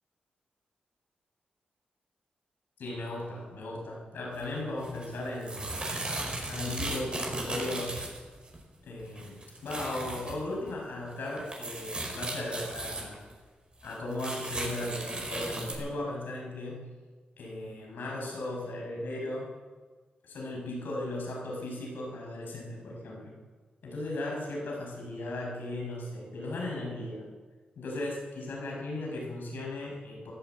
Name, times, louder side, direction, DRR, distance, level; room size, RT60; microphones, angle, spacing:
voice 1, 2.8-5.8 6.5-8.0 8.8-13.2 13.8-16.9 17.4-19.5 20.2-23.3 23.8-27.2 27.8-30.3, left 1 dB, 90° left, -1 dB, 5.8 m, -37 dB
sound 1, 4.3-4.5 4.8-8.6 9.0-10.4 10.7-10.8 11.1-13.4 13.8-15.7, right 2 dB, 30° right, 5.1 m, -36 dB
15.5 x 11.5 x 8.1 m, 1.4 s
cardioid pair, 85°, 3 cm